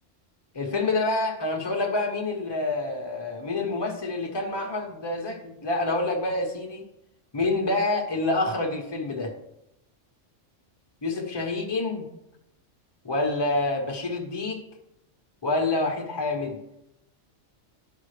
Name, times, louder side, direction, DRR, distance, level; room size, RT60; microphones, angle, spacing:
voice 1, 0.5-6.9 7.3-9.3 11.0-12.0 13.0-14.6 15.4-16.6, left 2 dB, 20° left, 2 dB, 1.1 m, -27 dB
12.0 x 5.5 x 3.3 m, 0.85 s
omnidirectional pair, 1.3 m